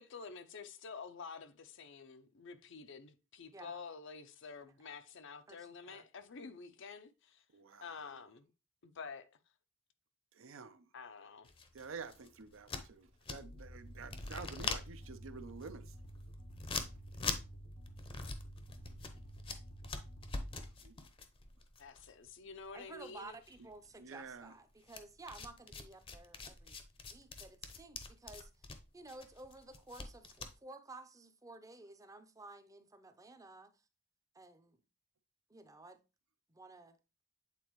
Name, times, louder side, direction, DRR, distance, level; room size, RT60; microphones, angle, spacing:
voice 1, 0.0-7.4 7.8-8.5 8.8-9.4 10.9-11.5 21.8-23.4, left 5 dB, 60° left, 0.6 m, -49 dB
voice 2, 5.5-6.0 22.7-26.8 27.1-28.5 28.9-33.7 34.3-34.8 35.5-36.0 36.5-37.0, right 2 dB, 15° right, 0.6 m, -53 dB
voice 3, 7.5-7.8 10.4-10.8 11.7-15.8 20.8-20.9 24.0-24.5, right 5 dB, 70° right, 0.6 m, -49 dB
sound 1, 11.4-13.7 14.0-22.8 23.0-23.9 24.9-30.5, left 4 dB, 25° left, 0.7 m, -43 dB
sound 2, 13.4-20.7, equal, 85° left, 1.1 m, -51 dB
8.3 x 4.0 x 3.0 m
head